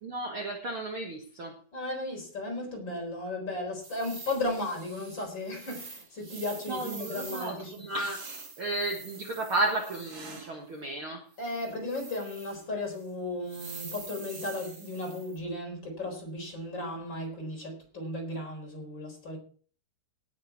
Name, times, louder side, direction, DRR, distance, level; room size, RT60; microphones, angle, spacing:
voice 1, 0.0-1.6 6.7-11.2, right 2 dB, 70° right, 1.2 m, -33 dB
voice 2, 1.7-7.8 11.4-19.4, left 2 dB, 25° left, 4.5 m, -35 dB
sound 1, 3.8-10.6 11.3-12.6 12.9-13.0 13.5-15.4, right 4 dB, 40° right, 1.3 m, -46 dB
17.5 x 7.7 x 4.5 m
omnidirectional pair, 5.0 m